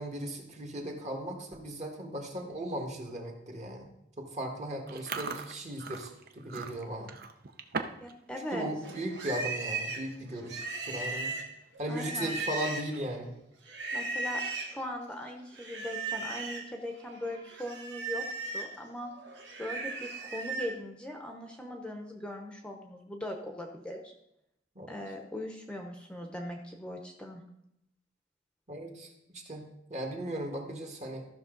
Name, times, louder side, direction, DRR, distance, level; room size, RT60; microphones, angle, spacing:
voice 1, 0.0-3.9 4.2-7.1 8.5-11.4 11.8-13.4 24.7-24.9 28.7-31.2, right 1 dB, 40° right, 2 dB, 1.6 m, -37 dB
Chewing mastication, 4.9-8.1 8.4-8.7 9.2-9.4 10.2-10.3 10.5-10.8 11.2-11.3 12.8-13.4, right 5 dB, 55° right, 0.7 m, -40 dB
voice 2, 8.0-8.6 11.9-12.4 13.9-18.2 18.5-19.1 19.6-24.1 24.9-27.4, left 1 dB, 5° left, 2 dB, 0.8 m, -40 dB
Livestock farm animals working animals, 8.8-13.1 13.7-14.8 15.5-16.7 17.1-20.7, right 3 dB, 75° right, 1.4 m, -37 dB
14.0 x 6.0 x 3.9 m, 0.79 s
head